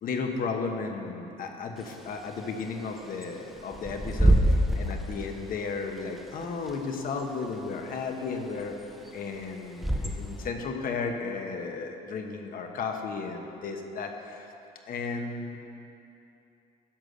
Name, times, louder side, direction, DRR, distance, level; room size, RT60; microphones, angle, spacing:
voice 1, 0.0-8.7 9.1-14.5 14.9-15.6, left 4 dB, 55° left, 4 dB, 1.1 m, -34 dB
Bird / Wind, 1.8-10.5, right 1 dB, ahead, 0.8 m, -29 dB
10.5 x 6.4 x 6.5 m, 2.8 s
cardioid pair, 110°, 17 cm